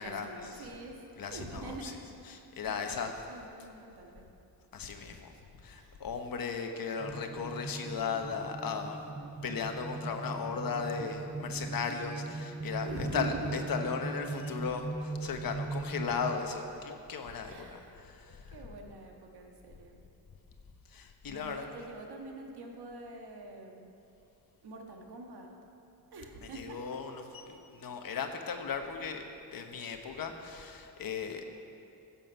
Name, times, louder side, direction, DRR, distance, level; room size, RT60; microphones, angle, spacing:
voice 1, 0.0-1.0 1.3-2.0 2.7-4.2 5.7-6.0 12.8-13.7 17.4-18.0 18.5-20.0 21.2-23.9 24.6-25.5 26.1-26.8, right 2 dB, 75° right, 1 dB, 1.5 m, -44 dB
voice 2, 1.2-1.9 2.3-3.2 4.7-5.3 5.6-9.0 9.4-12.9 13.1-18.6 20.9-21.7 26.5-31.5, left 6 dB, 60° left, 5 dB, 1.1 m, -36 dB
sound 1, 7.0-16.4, right 3 dB, 15° right, 0.3 m, -39 dB
15.0 x 7.2 x 5.6 m, 2.7 s
wide cardioid pair, 150°, 39 cm